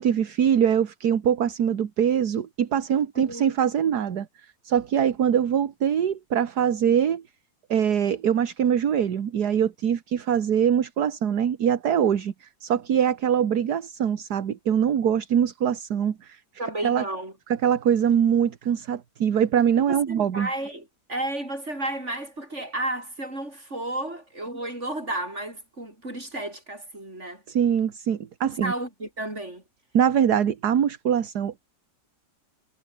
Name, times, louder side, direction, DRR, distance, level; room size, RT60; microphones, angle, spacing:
voice 1, 0.0-7.2 7.7-16.4 16.8-17.0 17.6-20.5 27.5-28.7 29.9-31.7, right 8 dB, 75° right, 1.9 m, -23 dB
voice 2, 3.1-3.5 16.6-17.3 19.7-27.4 28.4-29.6, right 1 dB, 45° right, 8.1 m, -32 dB
omnidirectional pair, 1.7 m